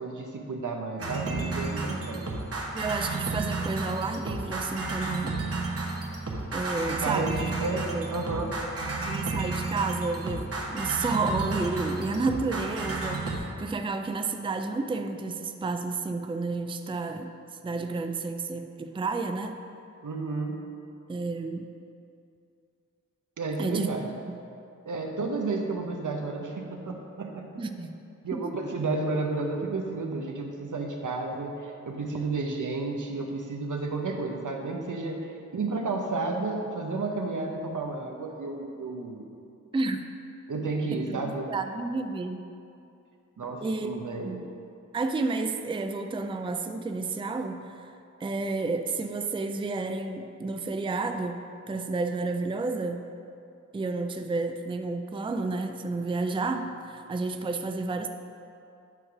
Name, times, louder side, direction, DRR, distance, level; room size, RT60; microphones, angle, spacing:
voice 1, 0.0-2.3 7.0-7.3 7.6-8.6 20.0-20.6 23.4-24.1 24.8-27.5 28.2-39.3 40.5-41.5 43.4-44.4, right 3 dB, 75° right, 2 dB, 0.8 m, -32 dB
sound 1, 1.0-13.4, right 3 dB, 50° right, 1.0 m, -32 dB
voice 2, 2.7-5.4 6.5-7.5 7.8-8.1 9.0-17.3 17.6-19.6 21.1-21.7 23.6-24.4 27.6-28.0 28.3-28.4 39.7-40.0 40.9-42.4 43.6-44.5 44.9-47.9 48.2-53.0 53.7-58.1, right 3 dB, 15° right, 7 dB, 0.4 m, -31 dB
8.9 x 3.1 x 5.9 m, 2.5 s
cardioid pair, 45°, 31 cm